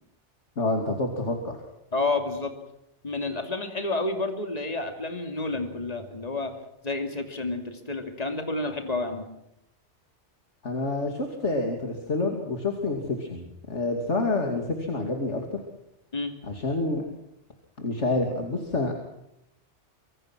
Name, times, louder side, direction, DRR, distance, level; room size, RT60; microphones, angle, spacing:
voice 1, 0.6-1.6 10.6-15.6 16.5-17.0 17.8-19.0, left 2 dB, 75° left, 3 dB, 3.0 m, -28 dB
voice 2, 1.9-2.5 3.0-6.6 6.8-9.3 16.1-16.3, left 2 dB, 35° left, 5 dB, 2.8 m, -30 dB
25.5 x 24.0 x 6.1 m, 0.82 s
omnidirectional pair, 1.2 m